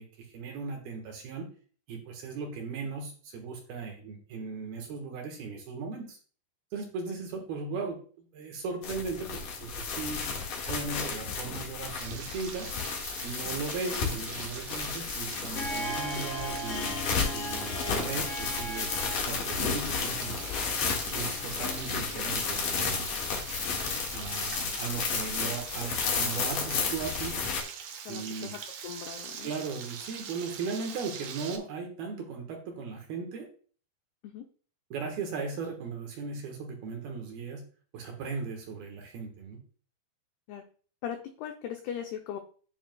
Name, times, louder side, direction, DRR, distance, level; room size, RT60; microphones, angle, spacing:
voice 1, 0.0-1.5 1.9-6.2 6.7-10.2 10.7-12.7 13.2-17.0 17.3-20.5 21.1-23.2 24.1-27.4 28.1-28.5 29.4-33.5 34.9-37.6 37.9-39.6, right 4 dB, 65° right, 2 dB, 2.9 m, -37 dB
sound 1, 8.8-27.6, left 5 dB, 55° left, 2.7 m, -33 dB
Frying (food), 12.0-31.6, right 7 dB, 85° right, 1.8 m, -43 dB
Harp, 15.3-23.0, equal, 35° left, 3.7 m, -40 dB
voice 2, 28.1-28.6 28.8-29.5 34.2-34.5 40.5-40.6 41.0-42.4, left 9 dB, 85° left, 5 dB, 2.3 m, -39 dB
9.8 x 9.2 x 2.3 m, 0.42 s
omnidirectional pair, 5.5 m